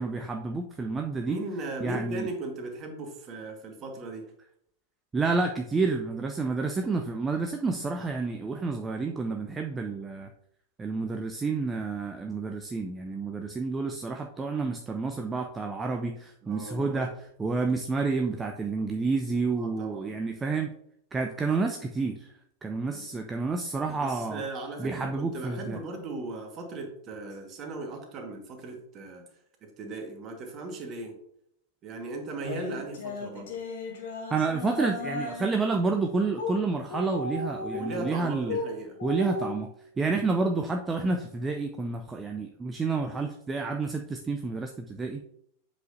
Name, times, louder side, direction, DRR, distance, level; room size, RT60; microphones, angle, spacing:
voice 1, 0.0-1.4 1.8-2.3 5.1-10.3 10.8-17.1 17.4-20.7 21.1-22.3 22.6-24.4 24.8-25.8 34.3-38.6 39.0-39.7 40.0-45.2, right 4 dB, 15° right, 4 dB, 0.5 m, -29 dB
voice 2, 1.3-4.2 16.4-17.1 19.6-20.1 22.8-23.0 23.9-29.2 29.6-31.1 31.8-33.5 37.7-39.0, right 2 dB, 30° right, 3 dB, 1.5 m, -38 dB
sound 1, 32.4-35.6 36.3-36.5 36.8-38.7 39.0-39.5, left 4 dB, 55° left, 1.7 m, -35 dB
7.9 x 5.1 x 2.7 m, 0.72 s
figure-of-eight pair, 90°, 0 cm